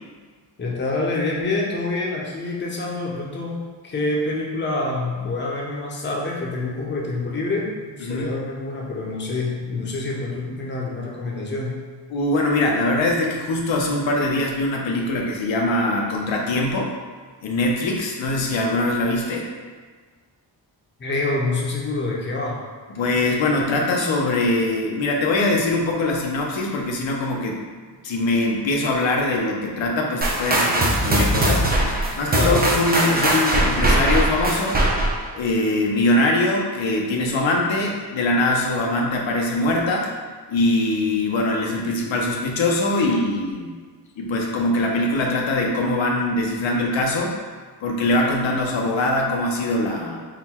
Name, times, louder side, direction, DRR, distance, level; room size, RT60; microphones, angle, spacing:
voice 1, 0.6-11.8 21.0-22.6 32.3-32.7, left 2 dB, 25° left, -2 dB, 0.6 m, -26 dB
voice 2, 12.1-16.9 17.4-19.5 22.9-27.6 28.0-31.8 32.2-35.0 35.3-40.1 40.5-43.7 44.2-47.4 47.8-50.3, left 2 dB, 90° left, 0 dB, 0.7 m, -22 dB
sound 1, 30.2-35.3, right 1 dB, 20° right, 0.5 m, -20 dB
3.8 x 2.2 x 4.2 m, 1.5 s
wide cardioid pair, 155°, 44 cm